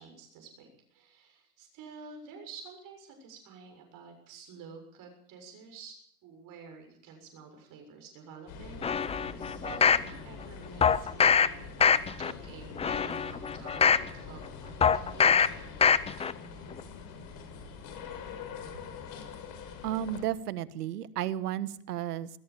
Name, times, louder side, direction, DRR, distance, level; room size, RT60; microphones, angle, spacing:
voice 1, 0.0-15.5 16.2-16.3, right 5 dB, 45° right, 4 dB, 7.0 m, -49 dB
sound 1, 8.5-20.2, left 5 dB, 50° left, 6.0 m, -44 dB
sound 2, 8.8-10.1 10.8-11.5 11.8-12.3 12.8-14.1 14.8-15.5 15.8-16.3 16.7-16.8, left 6 dB, 15° left, 0.7 m, -23 dB
voice 2, 19.8-22.3, right 11 dB, 85° right, 16 dB, 1.4 m, -33 dB
21.0 x 14.5 x 8.6 m, 0.65 s
hypercardioid pair, 115°, 46 cm